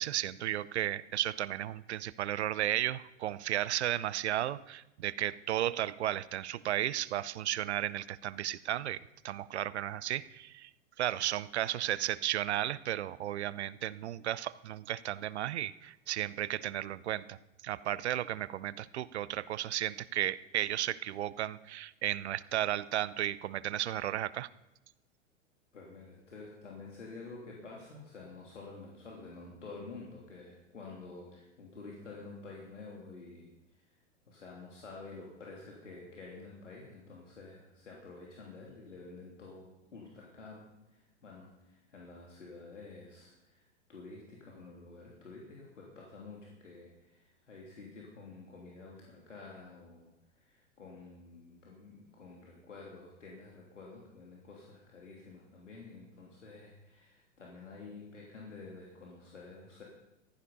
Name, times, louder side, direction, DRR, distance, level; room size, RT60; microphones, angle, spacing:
voice 1, 0.0-10.7 11.0-17.4 17.6-24.5, right 12 dB, 65° right, 19 dB, 0.7 m, -34 dB
voice 2, 25.7-34.0 34.3-59.8, left 3 dB, 80° left, -2 dB, 3.1 m, -50 dB
15.0 x 13.0 x 5.4 m, 0.95 s
figure-of-eight pair, 95°, 36 cm